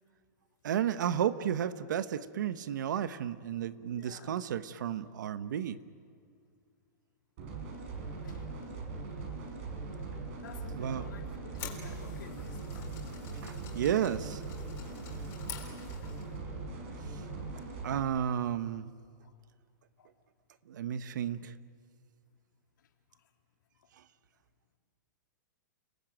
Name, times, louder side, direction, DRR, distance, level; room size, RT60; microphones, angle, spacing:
voice 1, 0.6-5.8 10.8-11.1 13.4-14.4 17.8-18.9 20.7-21.5, right 9 dB, 70° right, 13 dB, 1.1 m, -32 dB
voice 2, 3.9-4.4 8.2-8.5 9.2-9.4 10.4-12.9 15.4-15.6 17.6-17.7 19.2-19.3 20.0-20.1 23.1-23.2, left 7 dB, 85° left, 2 dB, 3.7 m, -53 dB
sound 1, 7.4-18.0, right 3 dB, 40° right, 5.1 m, -41 dB
sound 2, 11.2-16.4, left 9 dB, 25° left, 4.0 m, -48 dB
30.0 x 19.0 x 9.1 m, 2.3 s
supercardioid pair, 170°, 10 cm